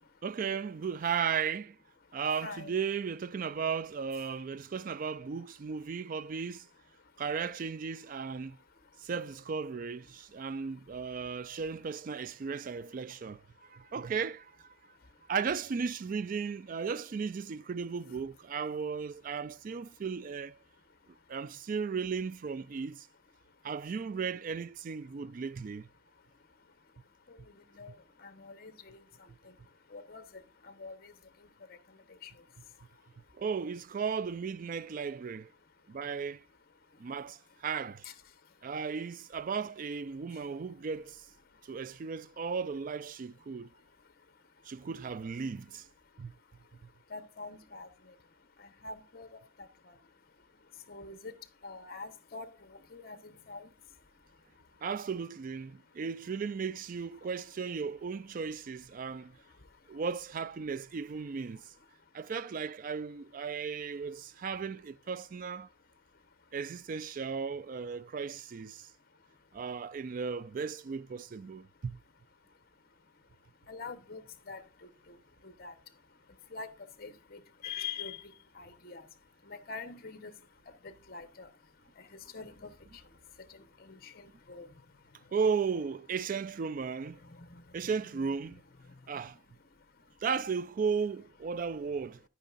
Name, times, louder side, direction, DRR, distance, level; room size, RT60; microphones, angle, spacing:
voice 1, 0.2-1.8 2.1-6.7 7.2-8.6 9.0-14.7 15.3-20.6 21.3-23.1 23.6-25.9 33.4-35.5 35.9-36.4 37.0-38.1 38.6-41.3 41.6-43.7 44.6-45.9 46.2-46.3 54.8-59.4 59.9-61.7 62.1-65.7 66.5-68.9 69.5-72.0 85.3-87.2 87.7-88.6 89.1-89.4 90.2-92.2, right 6 dB, 45° right, 0.3 m, -35 dB
voice 2, 2.4-2.8 27.7-27.9 28.2-29.0 29.9-30.2 30.8-31.1 32.2-32.3 47.1-47.9 48.8-49.3 49.9-50.0 50.9-51.3 51.6-52.5 52.9-53.7 73.7-74.6 75.4-75.7 76.5-76.7 77.0-78.2 78.6-79.0 79.5-80.3 81.1-81.5 82.3-82.7 83.8-84.1 84.5-84.7, left 5 dB, 50° left, 1.1 m, -44 dB
9.9 x 9.1 x 2.6 m
head